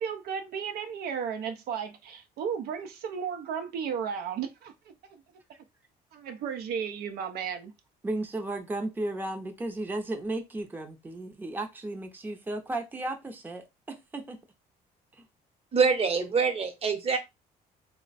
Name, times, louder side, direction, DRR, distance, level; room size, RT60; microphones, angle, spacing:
voice 1, 0.0-4.9 6.1-7.7, right 7 dB, 70° right, 0.5 m, -34 dB
voice 2, 8.0-14.4, right 2 dB, 10° right, 0.6 m, -34 dB
voice 3, 15.7-17.2, right 5 dB, 35° right, 0.9 m, -25 dB
3.2 x 2.1 x 4.0 m
cardioid pair, 110°, 17 cm